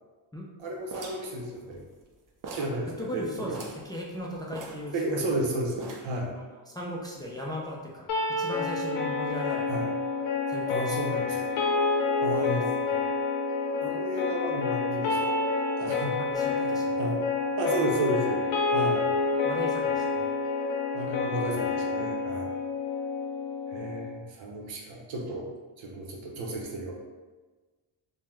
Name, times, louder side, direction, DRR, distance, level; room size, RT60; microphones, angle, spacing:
voice 1, 0.6-1.9 2.5-3.6 4.9-6.3 9.7-9.9 10.7-11.5 12.2-12.8 13.8-15.3 15.8-16.2 16.6-16.7 17.0-17.3 17.6-18.4 18.7-19.1 20.9-22.5 23.7-25.5 25.8-26.9, right 1 dB, 75° right, 0 dB, 0.8 m, -32 dB
sound 1, 0.9-2.1 2.4-2.8 3.1-3.2 3.5-3.9 4.5-5.4 5.8-6.2, right 3 dB, 45° right, 0.6 m, -42 dB
voice 2, 3.0-5.2 6.3-9.7 10.5-11.0 12.3-12.6 12.9-13.1 15.8-17.0 18.7-19.0 19.4-20.3, equal, 10° left, -3 dB, 0.4 m, -38 dB
sound 2, 8.1-24.1, left 4 dB, 75° left, 0.7 m, -28 dB
3.4 x 2.1 x 3.0 m, 1.3 s
cardioid pair, 75°, 47 cm